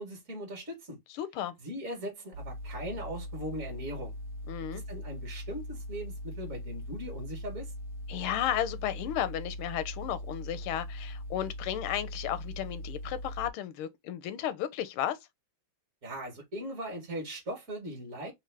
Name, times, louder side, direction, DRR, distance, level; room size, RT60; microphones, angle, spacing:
voice 1, 0.0-1.0 1.6-4.1 4.7-7.7 16.0-18.3, right 1 dB, 45° right, 1.5 m, -39 dB
voice 2, 1.1-1.5 4.5-4.8 8.1-15.2, left 11 dB, 90° left, 1.5 m, -33 dB
sound 1, 2.3-13.5, left 1 dB, 90° right, 1.6 m, -40 dB
4.3 x 2.1 x 3.2 m
omnidirectional pair, 2.3 m